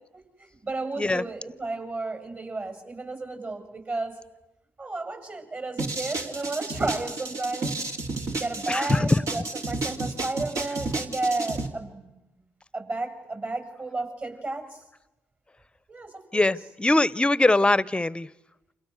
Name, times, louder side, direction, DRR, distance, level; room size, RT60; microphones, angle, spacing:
voice 1, 0.4-4.2 4.8-7.8 8.3-12.1 12.7-14.8 15.9-16.6, right 2 dB, 40° right, 6 dB, 7.7 m, -32 dB
sound 1, 5.8-11.7, right 3 dB, 55° right, 2.9 m, -31 dB
voice 2, 8.7-9.2 16.3-18.3, left 2 dB, 15° left, 20 dB, 0.9 m, -22 dB
29.5 x 27.5 x 6.6 m, 0.96 s
hypercardioid pair, 45°, 6 cm